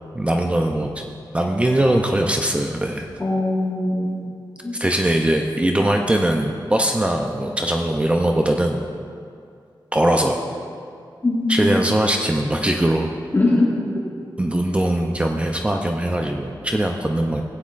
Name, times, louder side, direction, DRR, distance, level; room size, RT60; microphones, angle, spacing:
voice 1, 0.1-3.1 4.7-8.8 9.9-10.4 11.5-13.1 14.4-17.4, right 1 dB, 15° right, 2 dB, 0.5 m, -21 dB
voice 2, 3.2-4.3 4.6-4.7 11.2-11.7 13.3-13.7, left 2 dB, 30° left, -5 dB, 1.7 m, -20 dB
15.5 x 9.4 x 2.5 m, 2.3 s
wide cardioid pair, 140°, 8 cm